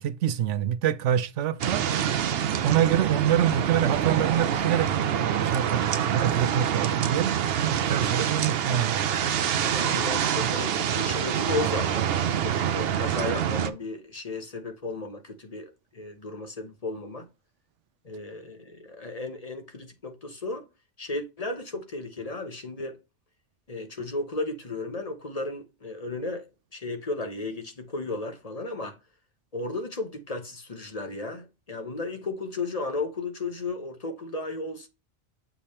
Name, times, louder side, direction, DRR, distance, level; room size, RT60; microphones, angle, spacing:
voice 1, 0.0-1.9 2.6-7.3 7.6-9.0, right 10 dB, 90° right, 0.9 m, -26 dB
sound 1, 1.6-13.7, right 9 dB, 60° right, 0.8 m, -26 dB
voice 2, 9.7-17.3 18.0-20.6 21.0-23.0 23.7-26.5 26.7-29.0 29.5-34.9, left 3 dB, 35° left, 1.0 m, -34 dB
7.2 x 3.4 x 4.2 m
omnidirectional pair, 1.2 m